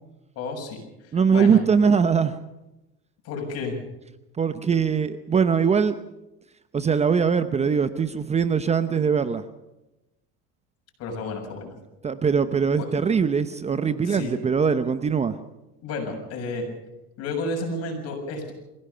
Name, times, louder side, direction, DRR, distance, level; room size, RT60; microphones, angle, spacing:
voice 1, 0.4-1.6 3.2-3.8 11.0-11.7 12.7-13.0 14.1-14.3 15.8-16.7 17.2-18.5, left 3 dB, 50° left, 7.2 m, -32 dB
voice 2, 1.1-2.4 4.4-6.0 6.7-9.4 12.0-15.3, right 6 dB, 20° right, 0.9 m, -21 dB
23.0 x 16.5 x 6.8 m
supercardioid pair, 120°, 31 cm